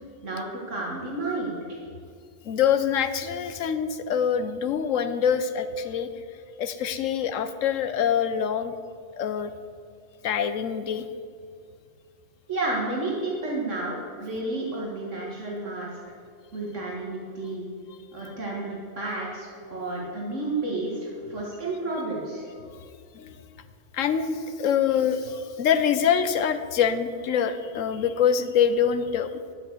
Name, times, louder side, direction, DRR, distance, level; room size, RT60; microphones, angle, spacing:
voice 1, 0.2-1.6 12.5-16.0 16.5-17.7 18.1-22.5, right 2 dB, 70° right, -3 dB, 2.1 m, -31 dB
voice 2, 2.4-6.1 6.6-8.7 9.2-9.5 10.2-11.0 19.7-20.1 21.2-21.5 22.6-22.7 23.1-23.3 23.9-29.4, left 8 dB, 80° left, 11 dB, 1.1 m, -25 dB
10.5 x 8.2 x 7.3 m, 2.2 s
omnidirectional pair, 1.3 m